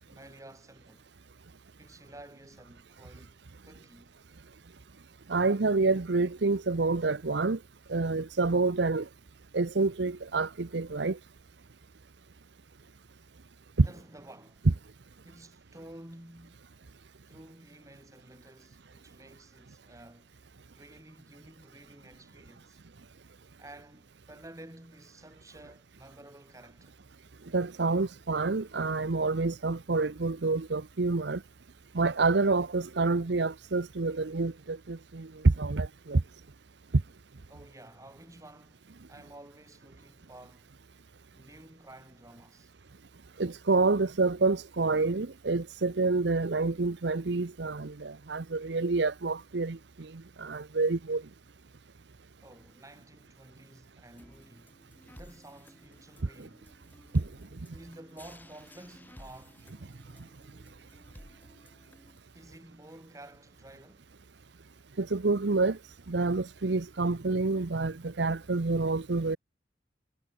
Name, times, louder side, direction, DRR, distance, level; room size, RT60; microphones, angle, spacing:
voice 1, 0.1-1.1 1.8-3.4 3.6-4.2 13.8-14.8 15.2-16.7 17.3-20.4 20.7-22.8 23.6-27.0 37.5-40.7 41.3-42.7 52.4-56.7 57.7-59.6 62.3-64.1, right 1 dB, 15° right, 6.1 m, -52 dB
voice 2, 5.3-7.6 7.9-9.1 9.5-11.2 13.8-13.9 27.5-31.4 31.9-36.2 43.4-50.1 50.4-51.2 56.4-56.5 57.1-57.2 65.0-65.8 66.1-69.4, right 3 dB, 65° right, 0.8 m, -28 dB
sound 1, 54.2-62.2, left 1 dB, 10° left, 4.5 m, -55 dB
head